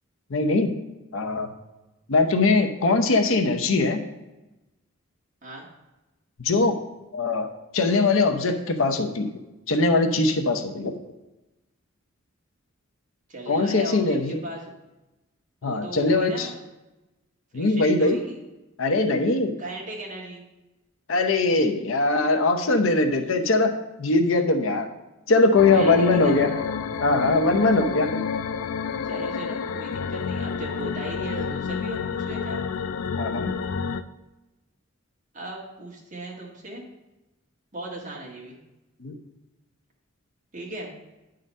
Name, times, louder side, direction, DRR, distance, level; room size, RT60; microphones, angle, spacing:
voice 1, 0.3-0.7 1.1-1.5 2.1-4.0 6.4-6.8 7.1-7.5 7.7-9.3 9.7-10.9 13.5-14.4 15.6-16.5 17.5-18.2 18.8-19.5 21.1-23.7 24.0-24.9 25.3-26.5 27.0-28.2 33.2-33.5 39.0-39.2, left 3 dB, 70° left, 5 dB, 0.8 m, -21 dB
voice 2, 13.3-14.7 15.6-16.5 17.5-18.4 19.6-20.4 25.7-26.5 29.0-32.6 35.3-36.8 37.7-38.6 40.5-40.9, right 1 dB, 35° right, -3 dB, 1.7 m, -37 dB
sound 1, 25.6-34.0, left 6 dB, 90° left, 0.4 m, -29 dB
9.7 x 3.9 x 5.4 m, 1.0 s
head